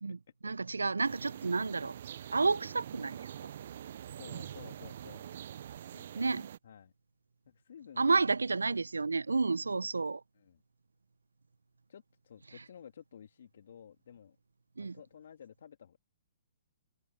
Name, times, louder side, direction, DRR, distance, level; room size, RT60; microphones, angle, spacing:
voice 1, 0.0-1.9 2.3-3.3 6.1-6.4 8.0-10.2 14.8-15.0, right 4 dB, 80° right, 0.7 m, -30 dB
sound 1, 1.0-6.6, right 10 dB, 55° right, 0.8 m, -45 dB
voice 2, 4.1-5.2 5.9-6.3 6.6-6.9 7.5-8.2 10.4-10.6 11.9-14.4 14.8-16.0, left 8 dB, 60° left, 2.0 m, -53 dB
figure-of-eight pair, 125°, 0 cm